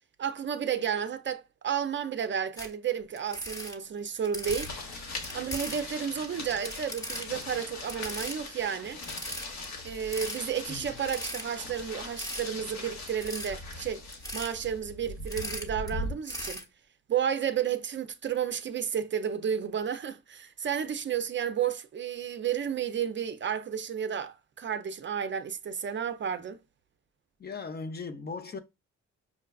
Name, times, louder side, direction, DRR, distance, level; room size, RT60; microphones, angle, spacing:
voice 1, 0.2-4.7 5.3-9.0 9.8-14.0 14.3-16.6 17.1-26.6, right 8 dB, 40° right, 0.5 m, -32 dB
sound 1, 2.6-2.7 3.2-4.7 5.2-5.9 6.4-7.4 7.9-8.4 8.7-8.8 9.0-9.7 10.1-10.4 11.0-11.6 12.2-12.5 13.1-13.5 14.1-14.5 15.1-15.9 16.2-16.6, equal, 10° left, 0.9 m, -38 dB
sound 2, 4.5-16.1, left 2 dB, 65° left, 1.3 m, -40 dB
voice 2, 27.4-28.6, left 4 dB, 35° left, 0.6 m, -38 dB
5.8 x 2.3 x 2.3 m
cardioid pair, 90°, 30 cm